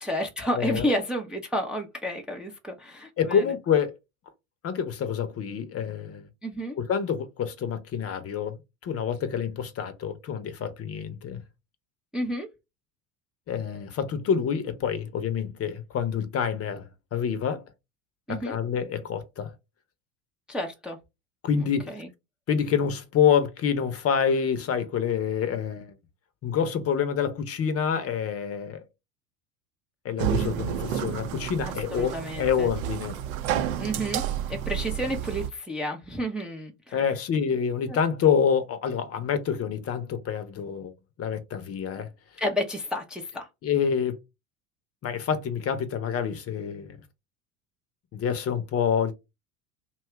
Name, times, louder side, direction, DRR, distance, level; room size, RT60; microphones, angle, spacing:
voice 1, 0.0-3.5 6.4-6.8 12.1-12.5 18.3-18.6 20.5-21.0 21.5-22.1 31.6-32.7 33.7-34.2 34.5-37.1 37.9-38.0 42.4-43.5, equal, ahead, 0.5 m, -31 dB
voice 2, 0.5-0.8 3.2-3.9 4.6-6.3 6.8-11.4 13.5-17.6 18.3-19.5 21.4-21.9 22.5-25.9 26.4-28.8 30.0-33.2 36.9-40.9 41.2-42.1 43.6-44.2 45.0-47.0 48.1-49.1, left 7 dB, 35° left, 0.7 m, -27 dB
sound 1, 30.2-35.5, right 10 dB, 70° right, 0.7 m, -30 dB
2.7 x 2.3 x 3.2 m
hypercardioid pair, 75°, 43 cm